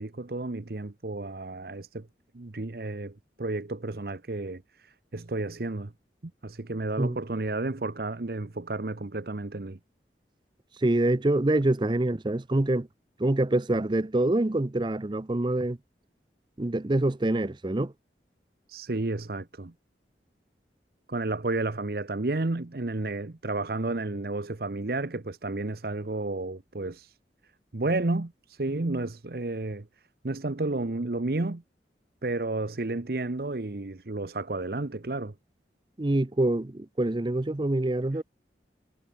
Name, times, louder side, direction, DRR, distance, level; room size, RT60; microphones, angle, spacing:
voice 1, 0.0-2.1 2.3-5.9 6.4-9.8 18.7-19.7 21.1-27.2 27.7-29.9 30.2-31.6 32.2-35.3, right 2 dB, 55° right, 0.9 m, -32 dB
voice 2, 10.8-12.9 13.2-15.8 16.6-17.9 36.0-38.2, right 1 dB, 25° right, 0.6 m, -25 dB
head